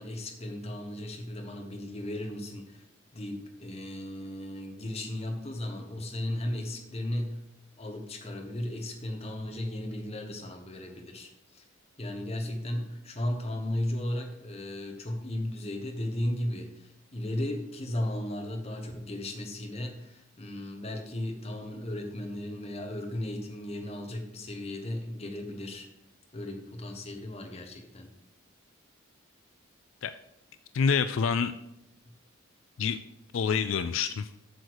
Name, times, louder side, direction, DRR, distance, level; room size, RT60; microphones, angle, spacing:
voice 1, 0.0-2.8 3.1-7.4 7.8-11.6 12.0-25.9 26.3-28.1, left 1 dB, 30° left, 3 dB, 1.2 m, -35 dB
voice 2, 30.7-31.5 32.8-33.0 33.3-34.3, left 6 dB, 75° left, 11 dB, 0.4 m, -27 dB
8.2 x 6.6 x 4.7 m, 0.83 s
head